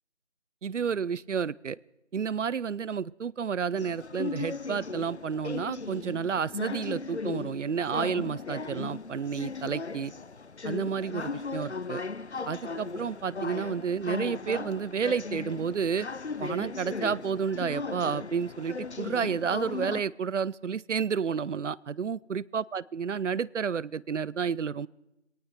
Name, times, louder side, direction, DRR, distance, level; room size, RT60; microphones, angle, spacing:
voice 1, 0.6-1.8 2.1-10.1 10.6-12.0 12.5-16.1 16.4-24.9, right 6 dB, 75° right, 24 dB, 0.5 m, -31 dB
sound 1, 3.8-20.0, left 4 dB, 65° left, 0.6 m, -37 dB
21.0 x 18.0 x 3.4 m, 0.92 s
figure-of-eight pair, 180°, 36 cm